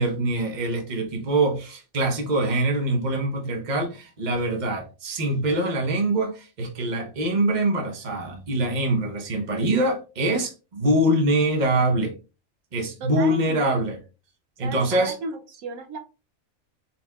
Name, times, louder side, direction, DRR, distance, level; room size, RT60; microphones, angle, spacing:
voice 1, 0.0-12.2 12.7-14.0 14.6-15.1, right 1 dB, 35° right, 1.0 m, -24 dB
voice 2, 13.0-13.8 14.6-16.0, right 3 dB, 75° right, 1.1 m, -34 dB
4.4 x 4.2 x 2.3 m
omnidirectional pair, 1.5 m